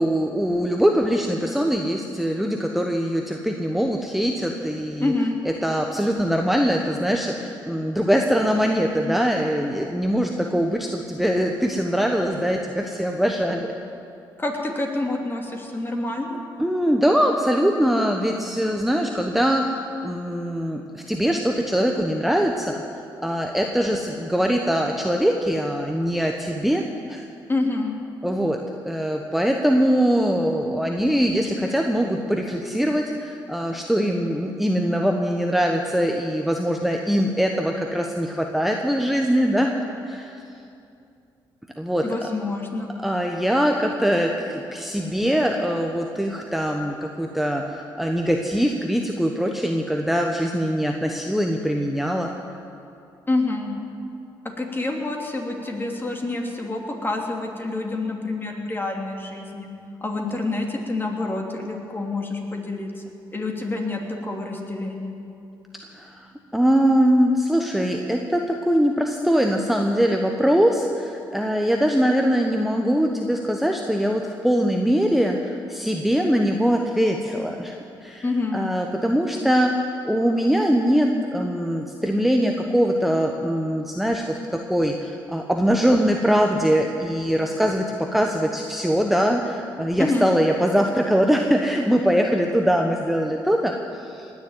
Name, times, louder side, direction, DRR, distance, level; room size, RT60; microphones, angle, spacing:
voice 1, 0.0-5.1 5.4-13.7 16.6-22.8 23.2-27.3 28.2-28.6 28.8-39.7 40.0-40.4 41.8-42.0 43.0-52.3 65.9-66.3 66.5-77.8 78.0-78.3 78.5-94.3, equal, ahead, 2 dB, 1.1 m, -22 dB
voice 2, 5.0-5.4 14.4-16.4 27.5-27.9 42.0-42.9 53.3-53.7 54.6-59.7 60.0-63.0 63.3-65.1 78.2-78.7 90.0-90.4, left 2 dB, 25° left, 1 dB, 2.8 m, -27 dB
19.5 x 7.3 x 9.4 m, 2.6 s
cardioid pair, 75°, 9 cm